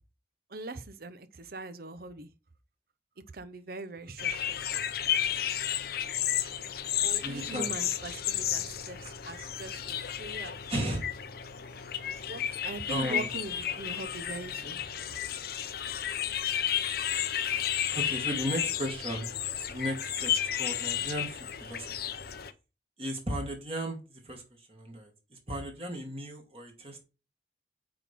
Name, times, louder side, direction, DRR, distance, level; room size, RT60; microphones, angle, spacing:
voice 1, 0.5-2.3 3.3-4.6 7.0-10.5 12.1-15.1, right 2 dB, 55° right, 0.8 m, -41 dB
sound 1, 4.2-22.5, left 10 dB, 55° left, 0.7 m, -32 dB
voice 2, 7.0-7.7 10.7-11.0 12.9-13.3 17.9-22.1 23.0-27.0, equal, 30° right, 2.0 m, -36 dB
8.8 x 4.3 x 3.6 m
head